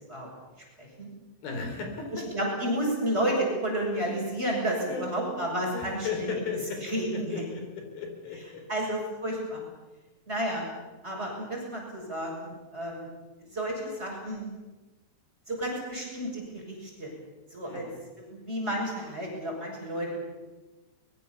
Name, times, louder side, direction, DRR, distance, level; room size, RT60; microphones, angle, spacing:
voice 1, 0.8-1.1 2.1-6.3 6.9-7.4 8.7-9.6 10.3-10.6 11.0-13.1 13.5-14.5 15.5-17.1 17.5-17.9 18.2-20.2, right 1 dB, 15° right, -1 dB, 6.7 m, -31 dB
voice 2, 1.4-2.3 3.9-4.1 4.8-5.4 5.7-9.0 17.6-18.0, left 4 dB, 85° left, 4 dB, 5.6 m, -36 dB
23.0 x 22.0 x 7.1 m, 1.2 s
omnidirectional pair, 4.1 m